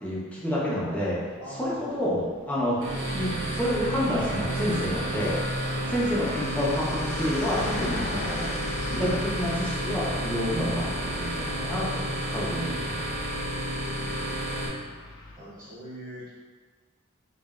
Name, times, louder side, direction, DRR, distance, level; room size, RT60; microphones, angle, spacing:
voice 1, 0.0-1.2 1.5-2.8 3.1-5.4 5.9-8.5 8.9-10.8 11.1-12.9, equal, 5° left, -8 dB, 0.9 m, -28 dB
voice 2, 1.4-2.0 5.6-5.8 13.3-14.4 15.3-16.3, equal, 25° right, -16 dB, 1.5 m, -43 dB
sound 1, 2.2-15.4, left 2 dB, 70° left, 0.5 m, -40 dB
sound 2, 2.8-14.7, right 1 dB, 70° right, 1.0 m, -31 dB
5.2 x 2.6 x 2.5 m, 1.4 s
head